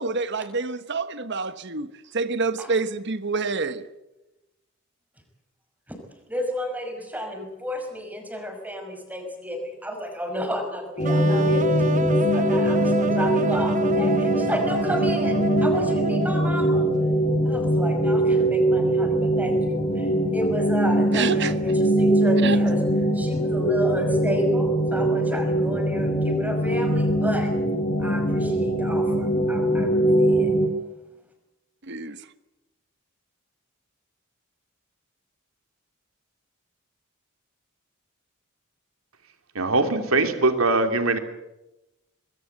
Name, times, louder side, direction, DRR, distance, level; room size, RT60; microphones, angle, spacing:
voice 1, 0.0-3.9 21.1-21.5 22.4-22.6 31.8-32.3, right 4 dB, 55° right, 12 dB, 1.3 m, -27 dB
voice 2, 6.3-12.1 12.3-16.9 17.4-22.8 23.1-27.5 28.0-30.5, equal, 10° right, 4 dB, 5.7 m, -31 dB
sound 1, 11.0-30.7, right 1 dB, 35° left, 2.8 m, -22 dB
sound 2, 11.0-16.9, right 3 dB, 35° right, 1.0 m, -29 dB
voice 3, 39.5-41.2, right 2 dB, 80° right, 6 dB, 3.0 m, -21 dB
24.5 x 21.5 x 8.1 m, 0.99 s
head